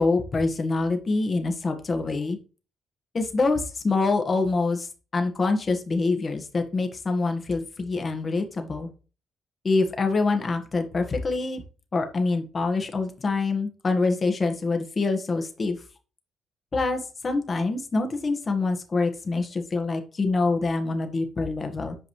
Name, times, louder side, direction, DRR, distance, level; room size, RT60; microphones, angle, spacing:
voice 1, 0.0-2.4 3.1-8.9 9.6-11.6 11.9-15.8 16.7-21.9, left 3 dB, 35° left, 5 dB, 1.5 m, -25 dB
8.0 x 5.2 x 3.2 m, 0.35 s
cardioid pair, 90°, 0 cm